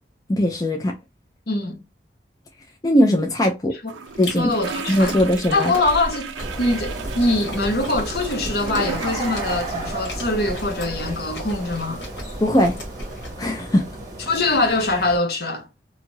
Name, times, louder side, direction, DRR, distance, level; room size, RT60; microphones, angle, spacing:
voice 1, 0.3-1.0 2.8-3.7 4.2-4.5 4.9-5.7 12.4-12.8 13.4-13.9, left 1 dB, 20° left, 0.4 m, -19 dB
voice 2, 1.5-1.8 3.8-3.9 4.2-12.0 14.3-15.7, left 2 dB, 55° left, 0.6 m, -23 dB
sound 1, 3.9-11.9, right 6 dB, 85° right, 0.4 m, -36 dB
Chewing mastication, 4.1-13.3, equal, 70° left, 1.3 m, -36 dB
sound 2, 6.4-15.2, right 2 dB, 20° right, 0.8 m, -33 dB
2.6 x 2.3 x 3.0 m
head